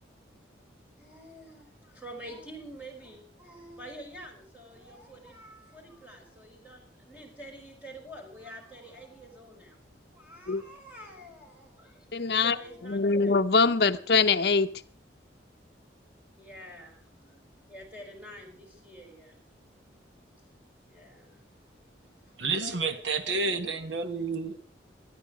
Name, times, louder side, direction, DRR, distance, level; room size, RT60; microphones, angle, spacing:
voice 1, 1.0-9.8 10.1-12.1 12.4-13.4 16.4-19.4 19.7-19.9 20.6-21.5 22.0-22.8, equal, 10° right, 5.2 m, -48 dB
voice 2, 12.1-12.6 12.8-14.7, left 4 dB, 60° left, 0.7 m, -23 dB
voice 3, 22.4-24.6, right 4 dB, 90° right, 1.5 m, -30 dB
19.5 x 13.0 x 5.0 m
head